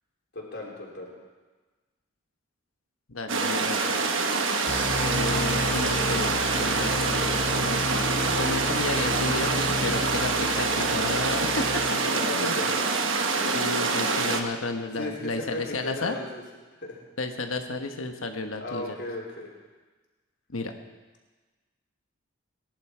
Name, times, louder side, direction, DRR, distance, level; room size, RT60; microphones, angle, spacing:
voice 1, 0.3-1.1 3.4-3.5 12.0-12.9 15.0-16.4 16.8-17.0 18.6-19.5, left 2 dB, 55° left, -3 dB, 3.5 m, -36 dB
voice 2, 3.1-4.0 5.1-7.8 8.4-11.8 12.1-12.6 13.4-16.1 17.2-19.0 20.5-20.7, left 3 dB, 90° left, 5 dB, 1.2 m, -32 dB
sound 1, 3.3-14.4, right 4 dB, 65° right, 1.2 m, -26 dB
sound 2, 4.7-12.3, left 1 dB, 10° left, 3.2 m, -32 dB
19.5 x 11.0 x 4.5 m, 1.3 s
head